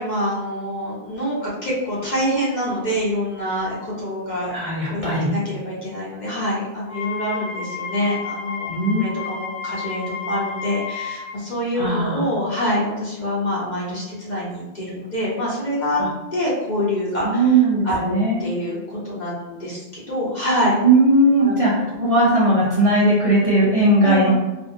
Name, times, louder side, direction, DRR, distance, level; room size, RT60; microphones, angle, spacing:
voice 1, 0.0-4.6 4.9-5.0 5.3-16.0 16.3-17.5 17.8-20.8 21.4-21.5 24.0-24.3, equal, 45° left, -6 dB, 0.8 m, -25 dB
voice 2, 4.5-5.3 8.7-9.1 11.7-12.3 16.0-16.1 17.2-18.4 20.8-24.3, right 1 dB, 45° right, -7 dB, 0.5 m, -18 dB
Wind instrument woodwind instrument, 6.8-11.4, left 5 dB, 85° right, 1.0 m, -31 dB
2.5 x 2.1 x 2.5 m, 1.1 s
omnidirectional pair, 1.1 m